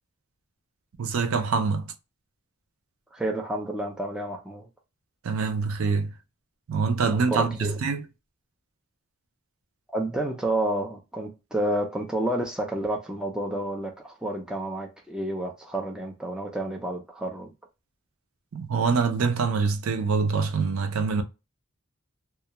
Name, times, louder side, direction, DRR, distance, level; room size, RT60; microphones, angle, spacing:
voice 1, 1.0-1.9 5.2-6.1 6.7-8.0 18.5-21.2, right 5 dB, 85° right, 0.5 m, -25 dB
voice 2, 3.1-4.7 7.3-7.8 9.9-17.5, right 1 dB, 5° right, 0.4 m, -30 dB
2.3 x 2.1 x 2.8 m
head